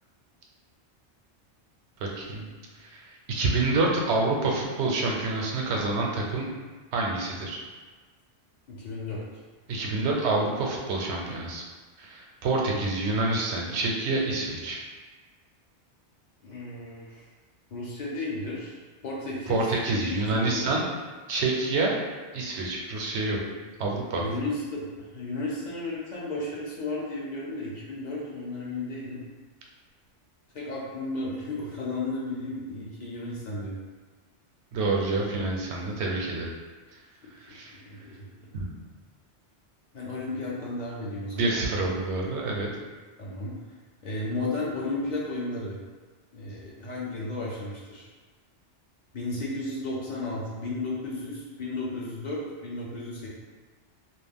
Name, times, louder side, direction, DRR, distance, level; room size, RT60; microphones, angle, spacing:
voice 1, 2.0-2.5 2.8-6.5 6.9-7.6 9.7-11.6 12.0-14.8 19.5-20.8 21.3-21.9 22.3-23.4 23.8-24.2 34.7-36.5 37.4-37.7 38.5-38.6 41.4-42.7, right 3 dB, 75° right, -1 dB, 0.9 m, -27 dB
voice 2, 8.7-9.4 12.7-12.9 16.4-17.2 17.7-18.8 19.0-19.6 19.9-20.6 24.2-29.2 30.5-33.8 37.9-38.3 39.9-41.5 43.2-43.5 44.0-45.8 46.3-48.1 49.1-53.3, left 2 dB, 55° left, -5 dB, 0.5 m, -34 dB
2.4 x 2.1 x 3.4 m, 1.4 s
omnidirectional pair, 1.2 m